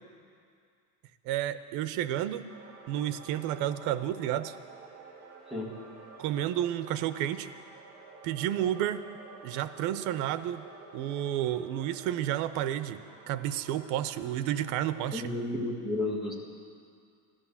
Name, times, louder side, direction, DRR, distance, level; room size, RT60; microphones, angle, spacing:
voice 1, 1.3-2.4 2.9-4.5 6.2-7.5 8.2-9.1 9.4-10.7 10.9-15.2, right 12 dB, 90° right, 13 dB, 0.7 m, -31 dB
sound 1, 2.5-15.2, right 4 dB, 55° right, 2.8 m, -51 dB
voice 2, 15.1-16.3, left 2 dB, ahead, -4 dB, 1.9 m, -32 dB
15.0 x 11.5 x 7.2 m, 2.3 s
cardioid pair, 165°, 29 cm